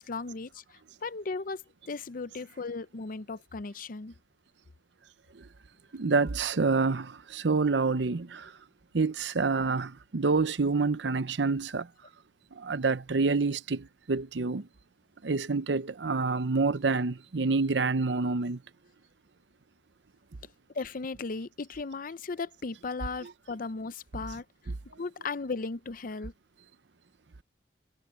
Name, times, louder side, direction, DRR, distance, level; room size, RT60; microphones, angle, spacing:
voice 1, 0.0-4.1 20.7-24.4 25.0-26.3, left 4 dB, 50° left, 0.6 m, -36 dB
voice 2, 5.9-8.5 8.9-11.9 12.6-14.7 15.2-18.6, right 4 dB, 80° right, 0.7 m, -27 dB
head